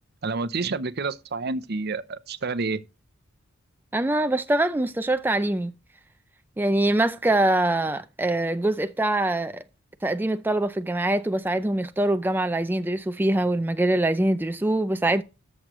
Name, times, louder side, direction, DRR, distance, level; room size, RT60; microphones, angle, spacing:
voice 1, 0.2-2.8, right 4 dB, 55° right, 0.7 m, -29 dB
voice 2, 3.9-5.7 6.6-9.6 10.0-15.2, right 1 dB, 10° right, 0.4 m, -24 dB
13.5 x 6.3 x 3.1 m
head